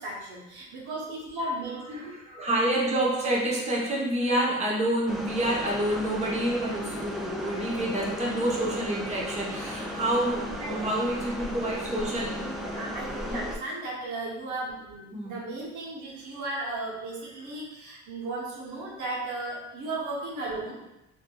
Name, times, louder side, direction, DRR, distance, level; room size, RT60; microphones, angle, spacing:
voice 1, 0.0-2.0 10.5-10.9 12.4-20.9, right 2 dB, 80° right, -5 dB, 0.9 m, -35 dB
voice 2, 1.9-12.4 13.2-13.4 15.1-15.4, right 1 dB, 20° right, -5 dB, 0.9 m, -28 dB
sound 1, 5.1-13.6, left 1 dB, ahead, 0.3 m, -36 dB
3.5 x 2.5 x 2.3 m, 0.92 s
cardioid pair, 90°, 30 cm